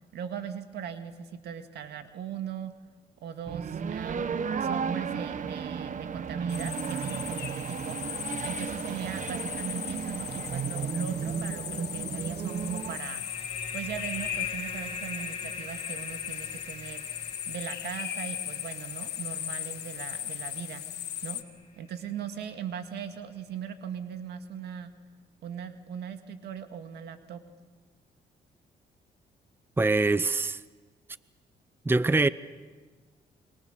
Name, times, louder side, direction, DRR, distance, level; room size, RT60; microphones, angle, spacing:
voice 1, 0.1-2.7 3.2-8.0 8.4-13.2 13.7-17.0 17.5-20.8 21.2-21.4 21.8-24.9 25.4-27.4, right 8 dB, 80° right, 2.0 m, -39 dB
sound 1, 3.5-13.0, right 6 dB, 50° right, 1.1 m, -33 dB
sound 2, 6.5-21.4, left 11 dB, 75° left, 1.6 m, -38 dB
sound 3, 12.5-21.8, left 5 dB, 35° left, 5.9 m, -41 dB
voice 2, 29.8-30.6 31.8-32.3, right 3 dB, 15° right, 0.7 m, -23 dB
29.5 x 24.5 x 6.8 m
cardioid pair, 80°, 17 cm